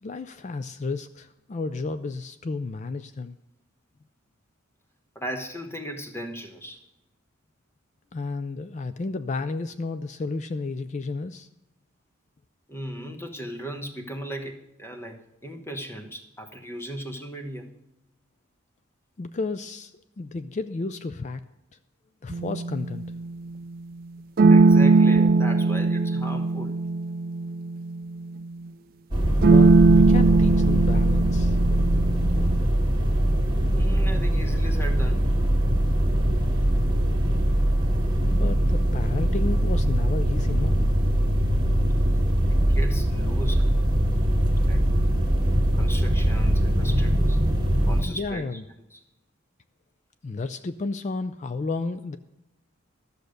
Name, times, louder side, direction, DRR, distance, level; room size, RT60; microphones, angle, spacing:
voice 1, 0.0-3.4 8.1-11.5 19.2-21.4 22.2-23.1 29.4-32.4 38.2-41.0 48.0-48.6 50.2-52.2, left 3 dB, 35° left, 11 dB, 0.4 m, -32 dB
voice 2, 5.1-6.8 12.7-17.7 24.5-26.8 33.7-35.3 42.5-43.7 44.6-44.8 45.8-47.4 47.9-48.4 48.9-49.0, right 1 dB, 10° left, 5 dB, 1.1 m, -37 dB
sound 1, 22.3-23.3 24.4-28.4 29.4-32.6, right 3 dB, 45° right, 0.3 m, -20 dB
sound 2, 29.1-48.0, right 1 dB, 20° right, 1.8 m, -22 dB
13.5 x 6.7 x 6.5 m, 0.92 s
head